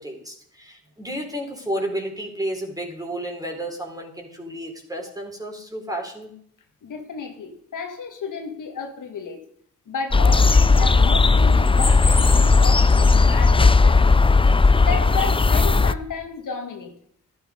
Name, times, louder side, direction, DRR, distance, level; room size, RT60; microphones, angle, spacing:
voice 1, 0.0-6.3, right 1 dB, 10° right, 1 dB, 4.4 m, -32 dB
voice 2, 6.8-9.4 9.9-14.0 14.8-16.9, left 5 dB, 80° left, 4 dB, 1.9 m, -32 dB
sound 1, 10.1-15.9, left 3 dB, 15° left, 0.5 m, -16 dB
13.0 x 11.5 x 5.2 m, 0.62 s
cardioid pair, 50°, 31 cm